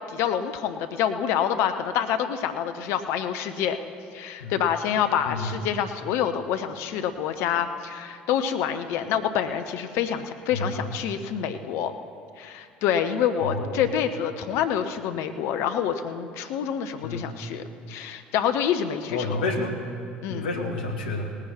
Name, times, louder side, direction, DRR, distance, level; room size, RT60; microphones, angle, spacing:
voice 1, 0.1-3.8 4.1-11.9 12.4-19.4 20.2-20.5, left 9 dB, 60° left, 9 dB, 0.8 m, -27 dB
voice 2, 10.5-10.8 13.4-13.8 17.0-17.3 19.1-19.7 20.3-21.3, left 2 dB, 75° left, 3 dB, 1.5 m, -29 dB
18.5 x 9.9 x 4.4 m, 2.4 s
figure-of-eight pair, 60°, 5 cm